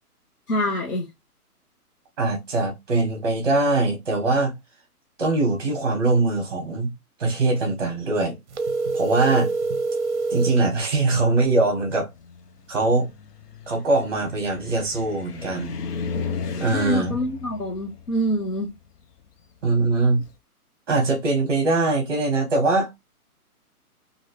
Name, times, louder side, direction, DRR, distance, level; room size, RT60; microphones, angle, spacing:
voice 1, 0.5-1.1 16.7-18.7, equal, 65° left, 1.2 m, -25 dB
voice 2, 2.2-4.5 5.2-6.9 7.2-8.4 8.9-9.5 10.3-12.1 12.7-13.1 13.7-15.8 16.6-17.2 19.6-20.2 20.9-22.9, right 2 dB, 15° right, 1.0 m, -22 dB
sound 1, 8.5-10.6, right 3 dB, 50° right, 0.6 m, -25 dB
Car, 12.1-20.4, left 5 dB, 90° left, 0.7 m, -35 dB
3.0 x 2.7 x 2.9 m
hypercardioid pair, 175°, 46 cm